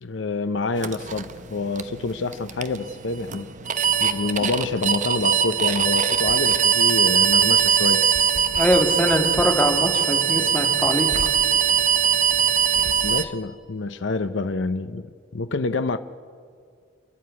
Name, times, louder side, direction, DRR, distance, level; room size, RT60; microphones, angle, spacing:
voice 1, 0.0-3.5 4.0-8.1 13.0-16.0, left 3 dB, 80° left, 10 dB, 0.7 m, -27 dB
sound 1, 0.8-13.2, right 8 dB, 40° right, 0.9 m, -21 dB
voice 2, 8.6-11.1, equal, 10° left, 3 dB, 2.1 m, -22 dB
29.0 x 11.5 x 9.6 m, 2.1 s
head